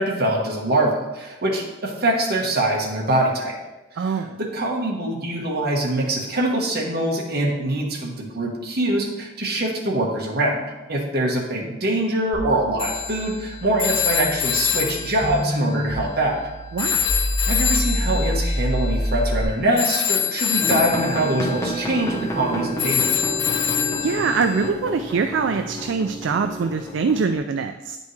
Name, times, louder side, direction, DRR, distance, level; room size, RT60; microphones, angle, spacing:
voice 1, 0.0-3.5 4.0-10.6 10.9-16.4 16.9-17.1 17.5-23.1, right 1 dB, 55° right, -2 dB, 1.2 m, -24 dB
voice 2, 4.0-4.4 16.7-17.1 24.0-28.0, right 5 dB, 70° right, 7 dB, 0.3 m, -23 dB
sound 1, 12.3-19.4, equal, 10° right, 1.1 m, -27 dB
Telephone, 12.8-16.4 16.8-24.7, left 9 dB, 70° left, 0.5 m, -26 dB
sound 2, 20.6-27.3, equal, 15° left, 0.9 m, -30 dB
9.2 x 5.3 x 3.2 m, 1.1 s
head